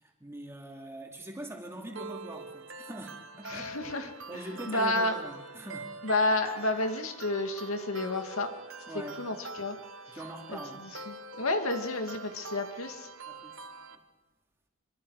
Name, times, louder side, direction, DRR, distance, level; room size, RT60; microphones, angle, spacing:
voice 1, 0.0-6.1 8.9-9.2 10.1-11.0 13.3-14.0, right 1 dB, 10° right, 1 dB, 2.9 m, -43 dB
cyber kid, 2.0-14.0, right 3 dB, 65° right, 1.3 m, -44 dB
voice 2, 3.5-4.1 4.7-5.1 6.0-8.5 9.2-9.8 10.5-10.6 11.1-13.1, left 2 dB, 80° left, 5 dB, 2.3 m, -30 dB
25.5 x 24.5 x 5.0 m, 1.1 s
head